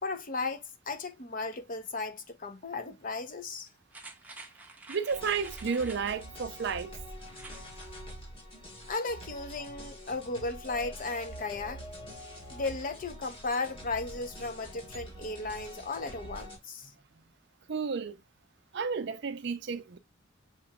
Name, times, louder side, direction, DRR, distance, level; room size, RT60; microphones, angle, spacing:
voice 1, 0.0-3.7 8.9-11.8 12.5-16.9, left 3 dB, 40° left, 0.7 m, -35 dB
sound 1, 3.9-6.3 7.3-7.7 8.1-8.2, right 3 dB, 10° right, 0.7 m, -48 dB
voice 2, 4.9-6.9 17.7-18.2 18.7-20.0, right 5 dB, 60° right, 0.5 m, -32 dB
sound 2, 5.1-16.6, equal, 25° left, 1.4 m, -45 dB
6.8 x 2.9 x 2.3 m
head